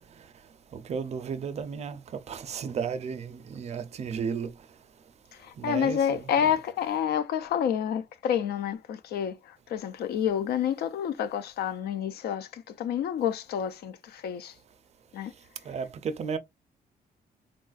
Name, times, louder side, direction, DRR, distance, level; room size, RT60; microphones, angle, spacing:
voice 1, 0.7-4.5 5.6-6.5 15.7-16.4, right 6 dB, 45° right, 0.4 m, -34 dB
voice 2, 5.4-14.5 15.1-15.3, left 9 dB, 90° left, 0.4 m, -29 dB
3.6 x 2.3 x 2.3 m
wide cardioid pair, 155°, 16 cm